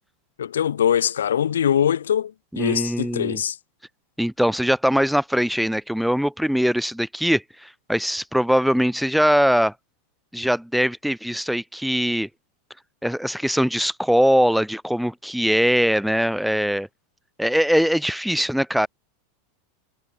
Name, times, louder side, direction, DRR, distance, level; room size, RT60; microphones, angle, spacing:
voice 1, 0.4-3.6, left 9 dB, 70° left, 1.5 m, -22 dB
voice 2, 2.5-3.4 4.2-9.7 10.3-12.3 13.0-16.9 17.4-18.9, equal, ahead, 1.4 m, -21 dB
figure-of-eight pair, 85°, 0 cm